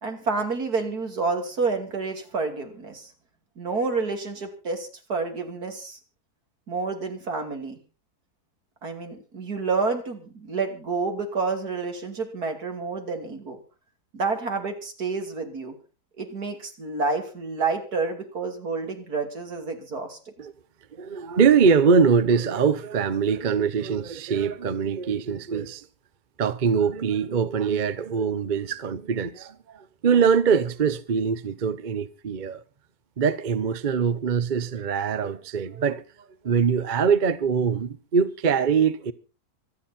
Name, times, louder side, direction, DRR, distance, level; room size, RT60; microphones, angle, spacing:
voice 1, 0.0-3.1 3.6-6.0 6.7-7.8 8.8-13.6 14.1-15.7 16.2-20.2, right 4 dB, 70° right, 3.2 m, -29 dB
voice 2, 20.9-25.9 26.4-32.6 33.2-39.1, right 6 dB, 40° right, 0.8 m, -23 dB
25.5 x 9.3 x 4.3 m
omnidirectional pair, 1.7 m